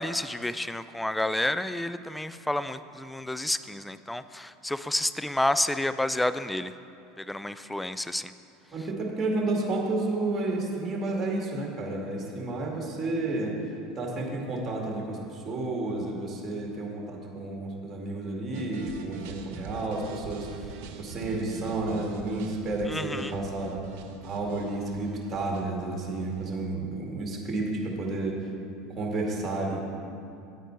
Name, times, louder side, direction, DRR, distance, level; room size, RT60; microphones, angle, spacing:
voice 1, 0.0-6.7 7.2-8.3 22.9-23.4, left 1 dB, 5° left, 13 dB, 0.4 m, -30 dB
voice 2, 8.7-13.6 14.0-23.8 24.2-28.4 28.9-29.8, right 2 dB, 25° right, -1 dB, 2.2 m, -31 dB
sound 1, 18.5-26.6, right 5 dB, 60° right, 0.8 m, -43 dB
9.4 x 9.0 x 4.6 m, 2.6 s
figure-of-eight pair, 75°, 0 cm